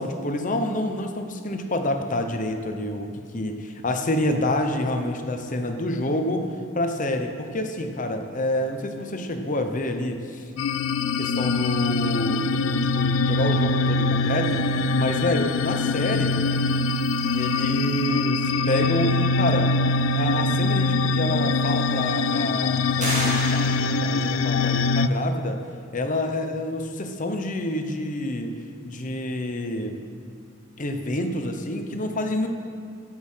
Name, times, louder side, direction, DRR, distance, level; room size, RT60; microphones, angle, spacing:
voice 1, 0.0-3.5 3.8-6.5 6.7-10.5 11.2-16.4 17.3-19.7 20.1-25.6 25.9-28.5 28.8-30.0 30.8-32.5, left 1 dB, 40° left, 5 dB, 0.9 m, -28 dB
sound 1, 10.6-25.1, left 3 dB, 75° left, 0.4 m, -23 dB
sound 2, 23.0-24.4, right 1 dB, 35° right, 2.8 m, -30 dB
15.5 x 6.5 x 5.7 m, 2.3 s
head